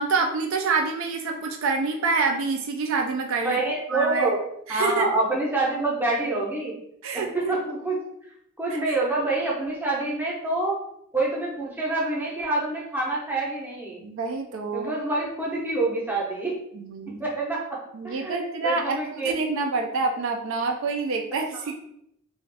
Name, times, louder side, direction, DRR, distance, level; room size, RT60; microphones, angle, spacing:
voice 1, 0.0-3.6 3.9-4.3 4.7-5.1 7.0-7.5 8.7-9.0 14.0-14.9 16.7-17.2 17.9-21.8, right 4 dB, 65° right, 3 dB, 0.3 m, -27 dB
voice 2, 3.4-4.4 4.7-6.8 7.1-8.0 8.6-10.8 11.1-14.0 14.7-16.5 17.2-19.3, right 2 dB, 10° right, -5 dB, 0.6 m, -27 dB
2.4 x 2.3 x 3.3 m, 0.75 s
head